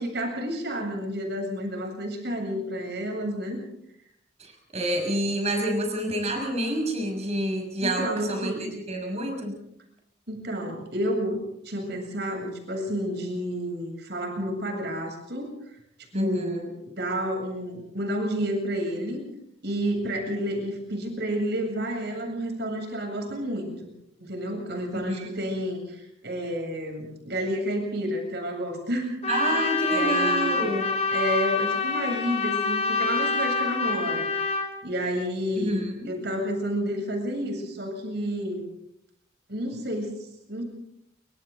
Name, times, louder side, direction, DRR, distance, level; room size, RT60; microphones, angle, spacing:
voice 1, 0.0-3.6 7.8-8.7 10.3-11.4 11.6-15.5 16.1-19.2 19.6-23.9 24.2-29.3 29.9-30.6 31.1-34.3 34.8-38.6 39.5-40.6, equal, 55° right, 3 dB, 7.8 m, -30 dB
voice 2, 4.4-9.6 16.1-16.6 24.9-25.4 29.3-30.9 35.5-36.1, right 1 dB, 35° right, 2 dB, 6.2 m, -28 dB
Trumpet, 29.2-34.7, left 4 dB, 35° left, 3.4 m, -26 dB
29.0 x 25.5 x 4.0 m, 0.73 s
head